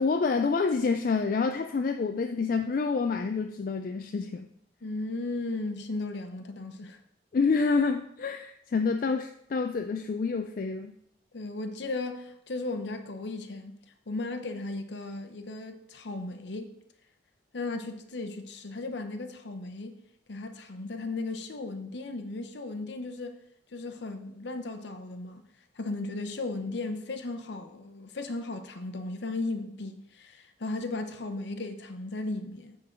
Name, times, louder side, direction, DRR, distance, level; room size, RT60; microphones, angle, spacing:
voice 1, 0.0-4.5 7.3-11.0, left 4 dB, 50° left, 0.3 m, -28 dB
voice 2, 4.8-7.0 11.3-13.8 14.1-16.7 17.5-20.0 20.3-23.4 23.7-25.4 25.7-32.8, left 2 dB, 70° left, 0.7 m, -36 dB
10.0 x 3.8 x 4.4 m
head